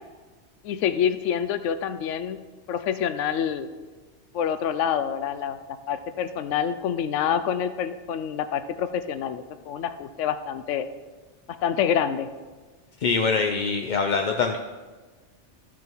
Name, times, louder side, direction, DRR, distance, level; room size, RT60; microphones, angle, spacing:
voice 1, 0.6-2.4 2.7-3.7 4.3-5.6 5.9-10.9 11.6-12.3, left 8 dB, 85° left, 11 dB, 0.9 m, -27 dB
voice 2, 13.0-14.6, left 4 dB, 50° left, 4 dB, 0.6 m, -23 dB
13.5 x 6.1 x 4.6 m, 1.3 s
omnidirectional pair, 1.2 m